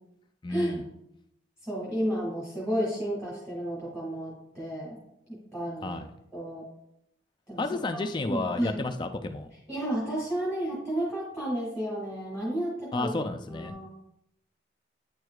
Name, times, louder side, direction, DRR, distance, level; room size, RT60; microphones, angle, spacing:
voice 1, 0.4-0.9 5.8-6.1 7.6-9.5 12.9-13.8, left 2 dB, 25° left, 7 dB, 0.3 m, -31 dB
voice 2, 1.6-5.0 5.3-6.0 6.3-6.6 7.5-7.6 8.3-8.8 9.7-13.1 13.5-13.9, equal, 5° right, -5 dB, 1.7 m, -32 dB
9.3 x 4.6 x 2.3 m, 0.79 s
head